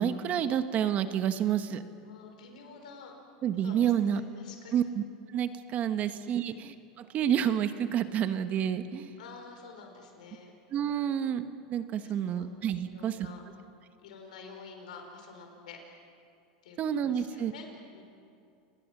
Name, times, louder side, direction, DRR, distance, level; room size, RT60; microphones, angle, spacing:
voice 1, 0.0-1.8 3.4-4.2 4.7-5.0 5.3-9.1 10.7-11.4 11.7-13.2 16.8-17.5, right 9 dB, 40° right, 10 dB, 1.3 m, -29 dB
voice 2, 2.0-3.1 3.6-4.9 6.0-6.1 6.4-6.6 9.2-10.5 12.0-12.5 12.9-13.4 14.0-15.8 16.6-16.8 17.1-18.0, left 5 dB, 85° left, 4 dB, 4.7 m, -49 dB
29.0 x 19.5 x 6.2 m, 2.4 s
supercardioid pair, 120°, 4 cm